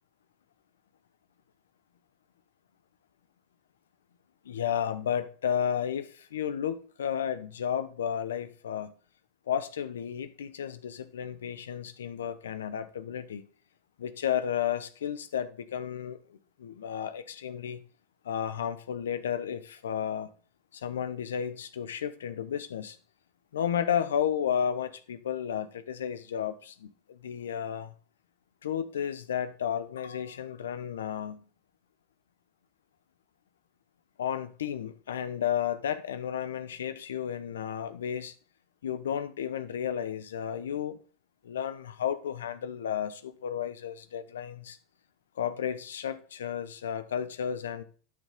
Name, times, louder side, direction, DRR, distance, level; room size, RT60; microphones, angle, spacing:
voice 1, 4.4-8.9 9.5-13.5 14.0-17.8 18.2-20.3 20.7-23.0 23.5-27.9 28.6-31.4 34.2-38.3 38.8-41.0 41.4-44.8 45.4-47.8, left 9 dB, 90° left, 0.9 m, -33 dB
11.5 x 6.8 x 3.6 m
hypercardioid pair, 105°, 0 cm